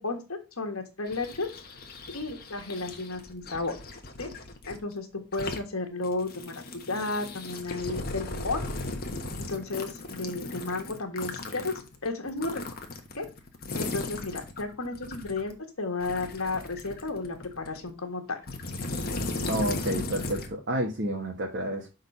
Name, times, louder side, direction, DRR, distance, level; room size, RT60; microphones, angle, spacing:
voice 1, 0.0-1.5 2.1-3.7 4.2-4.3 4.7-8.6 9.4-11.7 12.0-12.6 13.2-13.3 13.7-18.4, left 3 dB, 70° left, 4 dB, 1.6 m, -33 dB
sound 1, 1.1-4.8 5.2-5.6 6.0-15.5 16.0-17.9 18.4-20.5, left 2 dB, 45° left, 1.2 m, -37 dB
voice 2, 19.5-21.9, right 1 dB, 50° right, 0 dB, 1.3 m, -30 dB
6.5 x 4.0 x 5.4 m, 0.29 s
head